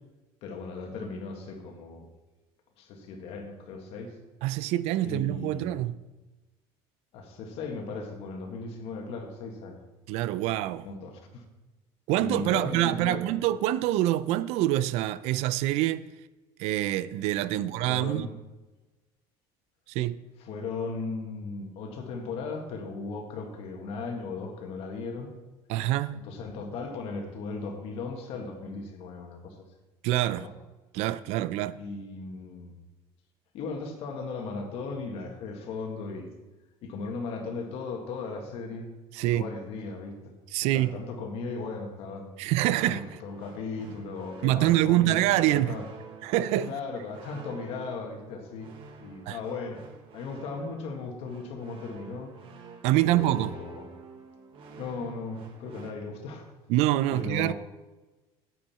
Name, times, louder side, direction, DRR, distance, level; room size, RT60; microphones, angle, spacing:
voice 1, 0.4-2.1 2.8-4.2 5.0-5.8 7.1-9.8 10.8-11.4 12.2-13.3 17.5-18.3 20.4-25.3 26.2-29.6 30.2-30.5 31.8-32.8 33.5-36.3 36.8-38.9 39.2-40.1 40.7-42.3 42.7-45.9 46.6-48.7 49.0-49.8 50.1-52.4 53.0-53.9 54.8-56.5 57.1-57.5, left 4 dB, 60° left, 1.7 m, -37 dB
voice 2, 4.4-6.0 10.1-10.9 12.1-16.0 16.6-18.3 19.9-20.2 25.7-26.2 30.0-30.5 30.9-31.8 39.1-39.5 40.5-41.0 42.4-43.0 44.4-45.7 46.2-46.7 49.3-49.4 52.8-53.5 56.7-57.5, right 15 dB, 65° right, 0.5 m, -25 dB
sound 1, 42.6-55.9, right 5 dB, 50° right, 1.4 m, -49 dB
9.3 x 9.2 x 4.3 m
cardioid pair, 135°, 11 cm